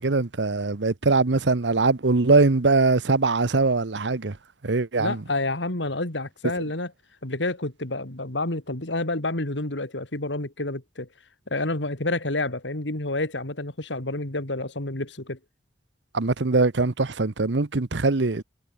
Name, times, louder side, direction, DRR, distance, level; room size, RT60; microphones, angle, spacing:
voice 1, 0.0-4.4 4.6-5.2 16.1-18.4, right 3 dB, 75° right, 1.0 m, -22 dB
voice 2, 5.0-6.9 7.2-11.1 11.5-15.4, left 2 dB, 85° left, 3.2 m, -29 dB
head